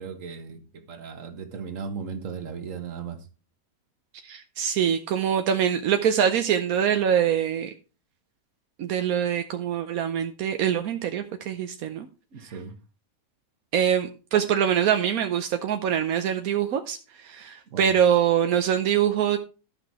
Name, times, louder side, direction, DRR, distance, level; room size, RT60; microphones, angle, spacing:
voice 1, 0.0-3.3 12.3-12.7 17.7-17.9, right 6 dB, 65° right, 1.7 m, -36 dB
voice 2, 4.2-7.7 8.8-12.1 13.7-19.4, right 9 dB, 85° right, 1.2 m, -24 dB
12.5 x 5.9 x 4.7 m
omnidirectional pair, 1.5 m